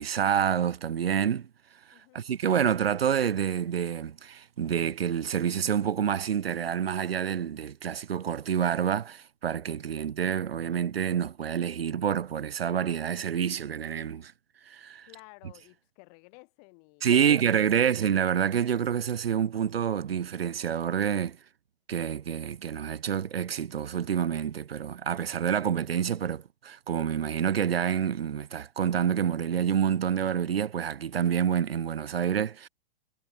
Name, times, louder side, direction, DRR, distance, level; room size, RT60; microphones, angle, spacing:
voice 1, 0.0-1.5 2.1-14.3 14.7-15.1 17.0-21.4 21.9-32.7, right 8 dB, 90° right, 0.4 m, -28 dB
voice 2, 1.9-2.3 15.1-18.1, left 39 dB, 40° left, 6.4 m, -54 dB
figure-of-eight pair, 110°, 29 cm